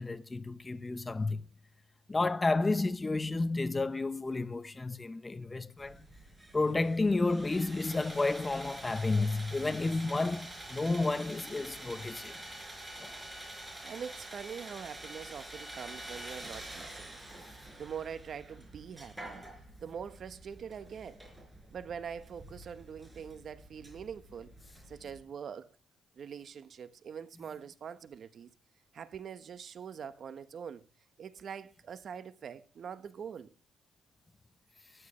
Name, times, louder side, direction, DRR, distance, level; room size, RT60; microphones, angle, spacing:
voice 1, 0.0-1.4 2.1-6.1 6.5-12.3 13.0-13.2, left 3 dB, 20° left, 0.9 m, -31 dB
Sawing, 5.8-25.2, right 1 dB, 15° right, 4.9 m, -47 dB
voice 2, 13.8-17.2 17.5-19.4 19.8-21.2 21.7-24.5 24.9-25.7 26.2-28.5 28.9-30.9 31.2-33.5, right 7 dB, 55° right, 1.1 m, -44 dB
14.5 x 12.5 x 3.2 m
cardioid pair, 90°, 0 cm